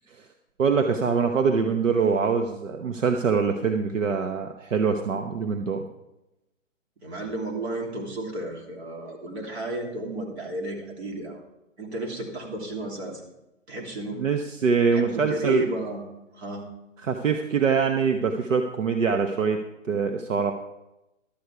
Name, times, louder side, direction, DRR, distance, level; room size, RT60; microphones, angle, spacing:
voice 1, 0.6-5.8 14.2-15.7 17.0-19.6 19.9-20.5, right 5 dB, 85° right, 5 dB, 1.1 m, -24 dB
voice 2, 7.0-11.4 11.8-13.2 13.7-14.3 14.9-16.0 16.3-16.6, right 2 dB, 60° right, 0 dB, 3.1 m, -33 dB
12.0 x 8.1 x 4.8 m, 0.94 s
hypercardioid pair, 170°, 37 cm